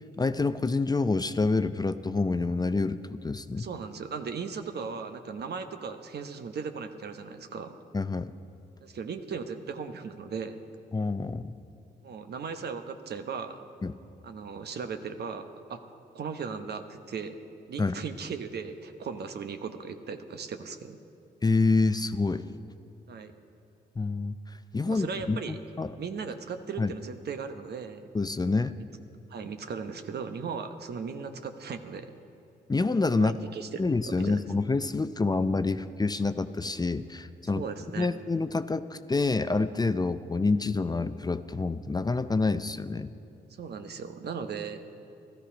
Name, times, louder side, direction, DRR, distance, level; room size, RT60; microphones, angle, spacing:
voice 1, 0.2-3.7 7.9-8.3 10.9-11.5 13.8-13.9 17.8-18.0 21.4-22.4 24.0-25.9 26.8-26.9 28.1-28.7 32.7-33.4 33.8-37.6 38.0-43.1, left 3 dB, 20° left, 11 dB, 0.5 m, -27 dB
voice 2, 3.6-7.8 8.8-10.6 12.0-13.6 14.2-17.4 17.7-21.0 23.1-23.3 24.9-25.6 26.0-28.1 29.3-32.1 33.1-33.8 34.2-34.3 37.5-38.1 43.6-45.0, right 5 dB, 60° right, 8 dB, 1.0 m, -37 dB
14.0 x 13.0 x 5.0 m, 2.7 s
supercardioid pair, 45°, 19 cm